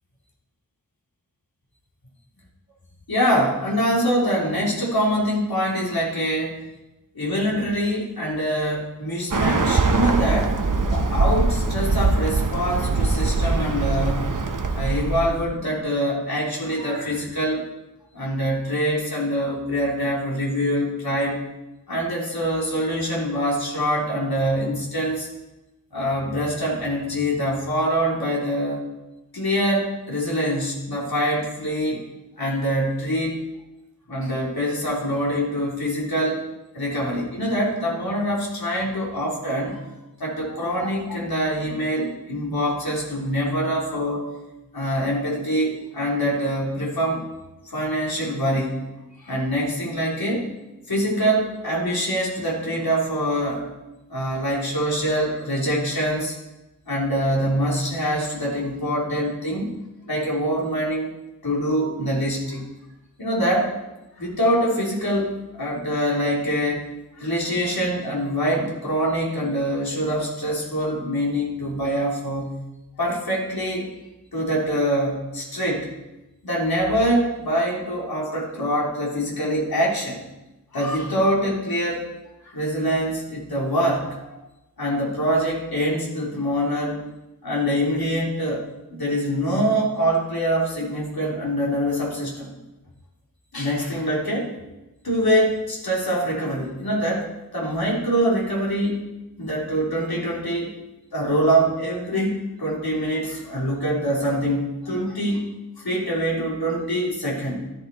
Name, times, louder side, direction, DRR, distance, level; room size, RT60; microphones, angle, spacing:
voice 1, 3.1-6.6 7.1-10.5 10.9-14.3 14.7-17.7 18.1-21.4 21.9-25.3 25.9-28.8 29.3-32.0 32.4-33.4 34.1-36.4 36.7-39.8 40.2-44.3 44.7-47.2 47.7-48.8 49.2-50.5 50.9-53.7 54.1-56.3 56.9-59.7 60.1-61.1 61.4-62.7 63.2-63.7 64.2-66.9 67.2-72.6 73.0-73.9 74.3-75.9 76.4-80.2 80.7-82.0 82.4-84.2 84.8-87.0 87.4-92.5 93.5-94.5 95.0-97.3 97.5-99.0 99.4-100.7 101.1-105.5 105.8-107.6, equal, 85° left, -4 dB, 3.5 m, -24 dB
Bird, 9.3-15.4, right 3 dB, 60° right, 1.1 m, -22 dB
13.0 x 12.0 x 4.2 m, 1.0 s
wide cardioid pair, 45°, 36 cm